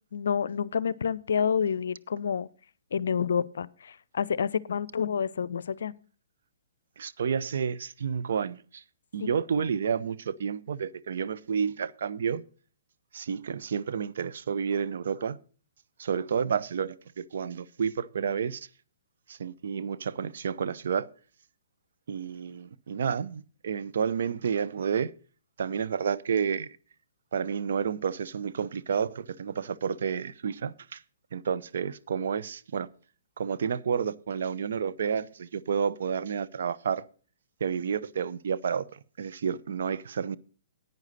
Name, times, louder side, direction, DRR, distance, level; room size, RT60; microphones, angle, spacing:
voice 1, 0.1-2.5 2.9-5.9 9.2-9.3 9.6-9.7, left 7 dB, 65° left, 0.5 m, -29 dB
voice 2, 7.0-8.8 9.1-12.4 13.1-15.4 16.0-18.7 19.3-21.1 22.1-25.1 25.6-26.7 27.3-31.0 31.3-32.9 33.4-37.0 37.6-38.9 39.2-40.4, right 7 dB, 60° right, 0.6 m, -30 dB
10.5 x 9.2 x 4.1 m
figure-of-eight pair, 120°, 0 cm